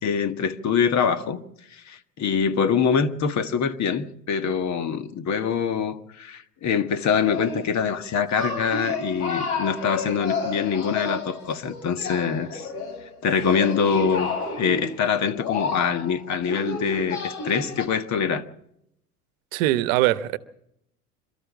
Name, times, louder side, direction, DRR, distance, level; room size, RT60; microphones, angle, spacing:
voice 1, 0.0-1.4 1.7-12.7 13.2-14.3 14.6-18.4, left 6 dB, 35° left, 1.5 m, -24 dB
sound 1, 7.2-7.8 8.4-17.9, left 4 dB, 65° left, 5.1 m, -31 dB
voice 2, 19.5-20.4, right 15 dB, 55° right, 1.1 m, -21 dB
27.0 x 13.5 x 7.4 m
figure-of-eight pair, 75°, 46 cm